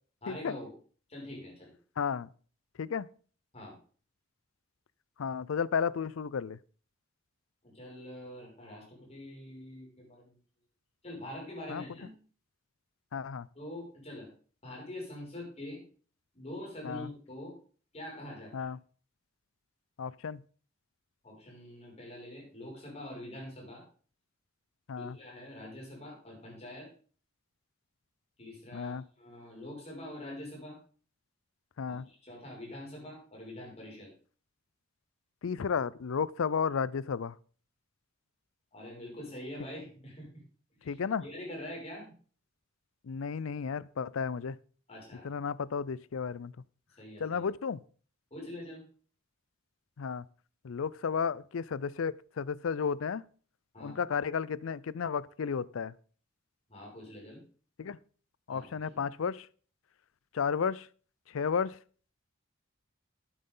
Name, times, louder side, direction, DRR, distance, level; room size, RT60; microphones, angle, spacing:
voice 1, 0.2-0.7 1.1-1.7 3.5-3.8 7.6-10.3 11.0-12.1 13.5-14.3 14.6-15.8 16.3-17.5 17.9-18.7 21.2-23.8 24.9-26.9 28.4-30.8 31.8-34.1 38.7-40.4 40.8-42.1 44.9-45.3 47.0-47.4 48.3-48.8 53.7-54.0 56.7-57.4 58.5-59.0, left 1 dB, 30° left, 5.8 m, -44 dB
voice 2, 2.0-2.3 2.8-3.1 5.2-6.6 11.7-11.8 13.1-13.5 16.8-17.1 18.5-18.8 20.0-20.4 24.9-25.2 28.7-29.0 31.8-32.1 35.4-37.4 40.8-41.2 43.0-44.6 45.2-46.5 47.2-47.8 50.0-50.2 50.6-53.2 53.8-55.9 57.8-58.0 58.5-59.5 60.3-60.9 61.3-61.8, left 6 dB, 75° left, 0.4 m, -33 dB
11.5 x 9.4 x 3.8 m
head